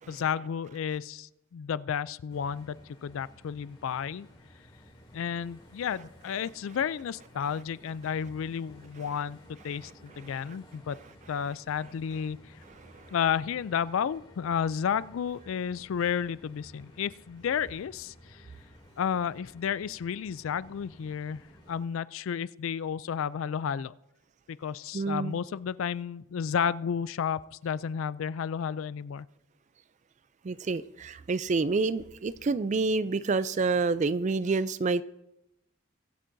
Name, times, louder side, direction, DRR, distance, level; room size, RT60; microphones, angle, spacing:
voice 1, 0.1-4.3 5.1-11.0 11.3-12.4 13.1-18.4 19.0-21.4 21.7-23.9 24.5-29.3, left 7 dB, 70° left, 0.3 m, -32 dB
sound 1, 2.3-21.8, left 1 dB, 25° left, 2.8 m, -55 dB
voice 2, 12.8-13.1 24.9-25.4 30.4-35.0, right 3 dB, 35° right, 0.3 m, -28 dB
23.0 x 8.3 x 2.7 m
head